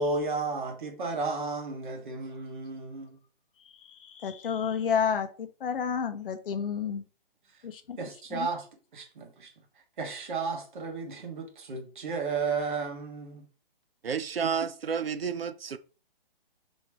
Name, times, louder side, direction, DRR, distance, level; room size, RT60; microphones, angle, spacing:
voice 1, 0.0-3.2 8.0-8.7 8.9-9.5 10.0-13.4, right 3 dB, 55° right, 1.4 m, -33 dB
voice 2, 3.6-7.0 7.6-8.0 8.3-8.5, left 7 dB, 65° left, 0.6 m, -31 dB
voice 3, 14.0-15.8, right 6 dB, 85° right, 0.5 m, -31 dB
3.1 x 3.1 x 4.5 m
figure-of-eight pair, 135°, 29 cm